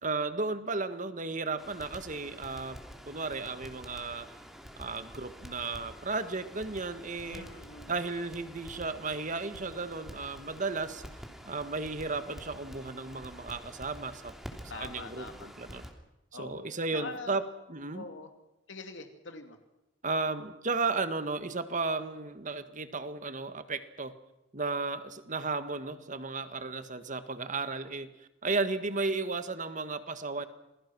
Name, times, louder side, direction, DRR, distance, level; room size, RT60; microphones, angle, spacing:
voice 1, 0.0-2.8 3.1-4.3 4.8-7.5 7.9-11.0 11.5-14.3 14.7-15.9 16.4-17.4 17.7-18.1 20.0-24.1 24.5-28.1 28.4-30.4, right 3 dB, 40° right, 10 dB, 1.7 m, -34 dB
Crackle, 1.6-15.9, equal, ahead, 3.2 m, -48 dB
voice 2, 7.2-8.0 14.7-15.5 16.3-16.6 16.9-17.4 17.9-18.3 18.7-19.6, left 3 dB, 75° left, 5 dB, 2.7 m, -44 dB
28.0 x 21.0 x 6.2 m, 0.97 s
head